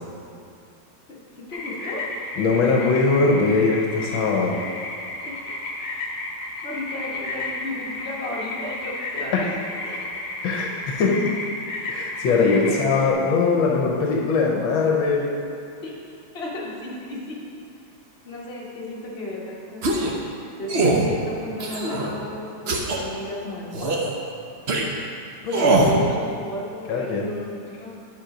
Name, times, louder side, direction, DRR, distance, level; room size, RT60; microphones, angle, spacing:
voice 1, 1.1-2.0 5.2-5.3 6.6-10.0 12.7-13.1 15.8-15.9 16.3-17.4 18.2-24.0 25.5-28.0, left 2 dB, 30° left, -5 dB, 1.7 m, -34 dB
sound 1, 1.5-13.1, left 2 dB, 50° left, 1.2 m, -33 dB
voice 2, 2.4-4.6 9.3-9.4 10.4-11.3 11.9-15.3 25.4-25.7 26.9-27.3, left 4 dB, 75° left, 0 dB, 1.6 m, -21 dB
sound 2, 19.8-20.2 20.7-21.1 21.6-22.1 22.7-23.0 23.7-24.1 24.7-24.9 25.5-26.0, right 2 dB, 55° right, 0.7 m, -21 dB
10.5 x 5.3 x 5.0 m, 2.5 s
omnidirectional pair, 2.2 m